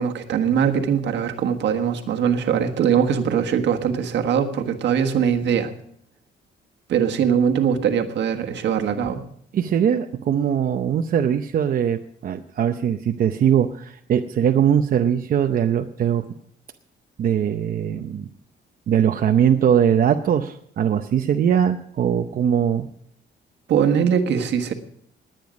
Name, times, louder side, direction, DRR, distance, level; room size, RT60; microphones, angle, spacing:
voice 1, 0.0-5.7 6.9-9.2 23.7-24.7, right 8 dB, 70° right, 6 dB, 1.5 m, -21 dB
voice 2, 9.5-16.2 17.2-18.3 18.9-22.9, right 9 dB, 50° right, 5 dB, 0.7 m, -21 dB
20.5 x 9.1 x 5.2 m, 0.67 s
cardioid pair, 150°, 19 cm